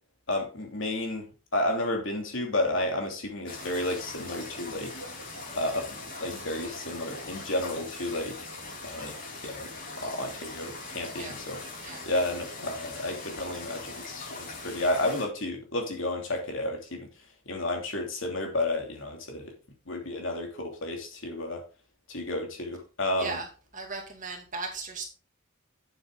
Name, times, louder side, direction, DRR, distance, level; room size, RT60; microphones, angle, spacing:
voice 1, 0.3-5.2 5.5-8.5 8.8-9.7 10.0-11.6 12.0-17.1 17.5-19.5 19.9-21.6 22.1-23.4, left 1 dB, 60° left, 2 dB, 2.8 m, -32 dB
sound 1, 3.5-15.2, left 2 dB, 40° left, 5.2 m, -41 dB
voice 2, 23.7-25.1, right 3 dB, 35° right, 3 dB, 2.3 m, -37 dB
9.0 x 7.8 x 3.9 m, 0.34 s
head